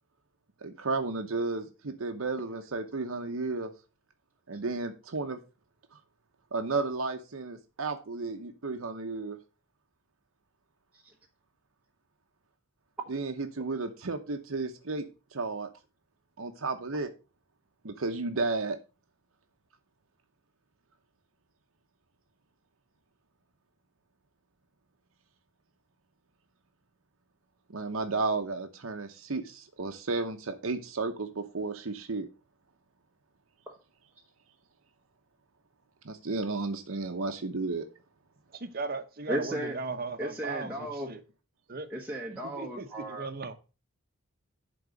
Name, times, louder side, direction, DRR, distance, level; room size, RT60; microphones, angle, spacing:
voice 1, 0.6-3.7 4.5-5.4 6.5-9.4 13.1-15.1 15.3-15.7 16.4-17.1 17.8-18.8 27.7-32.3 36.0-37.9, right 3 dB, 75° right, 0.9 m, -33 dB
voice 2, 38.5-41.2 41.7-41.9 42.4-43.5, right 4 dB, 45° right, 0.9 m, -37 dB
voice 3, 39.3-39.8 40.2-41.1 41.9-43.3, right 1 dB, 10° right, 1.0 m, -35 dB
10.5 x 3.9 x 5.1 m
head